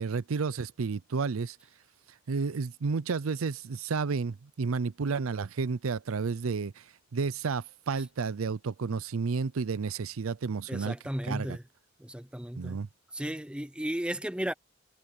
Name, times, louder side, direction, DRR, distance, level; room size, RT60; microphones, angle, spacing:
voice 1, 0.0-1.6 2.3-6.8 7.1-11.0 11.3-11.6 12.6-12.9, right 5 dB, 90° right, 0.5 m, -31 dB
voice 2, 10.7-11.6 12.0-12.8 13.1-14.5, equal, 5° right, 0.8 m, -34 dB
head